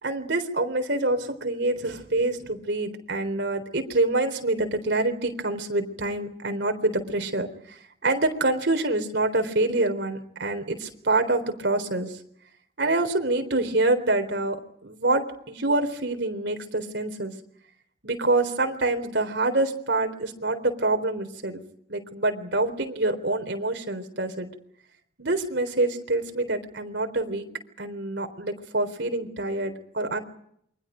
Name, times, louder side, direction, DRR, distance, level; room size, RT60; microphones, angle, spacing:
voice 1, 0.0-12.2 12.8-14.6 14.8-17.3 18.0-21.6 21.9-24.5 25.2-27.5 27.8-30.2, right 2 dB, 65° right, 6 dB, 3.9 m, -26 dB
28.5 x 24.0 x 5.2 m, 0.69 s
head